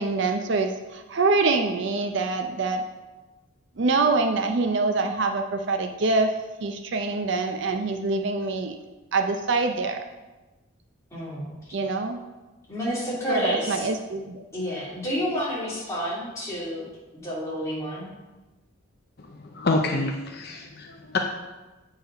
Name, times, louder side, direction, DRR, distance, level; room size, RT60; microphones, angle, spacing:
voice 1, 0.0-2.8 3.8-6.3 6.6-8.7 9.1-10.0 11.7-12.2 13.3-14.4, right 3 dB, 55° right, 6 dB, 0.5 m, -25 dB
voice 2, 11.1-11.8 12.7-13.9 14.5-18.1, equal, 15° left, -9 dB, 2.8 m, -30 dB
voice 3, 19.2-21.2, left 3 dB, 45° left, 2 dB, 0.5 m, -27 dB
8.0 x 4.8 x 5.1 m, 1.1 s
head